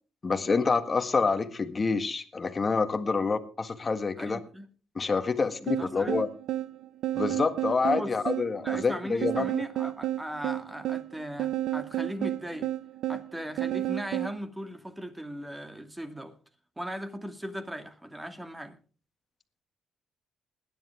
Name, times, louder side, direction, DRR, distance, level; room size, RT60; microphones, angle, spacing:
voice 1, 0.2-4.4 4.9-6.3 7.1-9.4, left 4 dB, 35° left, 1.7 m, -27 dB
voice 2, 4.2-4.7 5.8-6.2 7.8-8.1 8.6-12.7 13.1-16.3 16.8-18.8, equal, 10° right, 2.3 m, -38 dB
sound 1, 5.7-14.4, right 13 dB, 85° right, 0.6 m, -31 dB
20.5 x 10.5 x 3.5 m
cardioid pair, 90°, 0 cm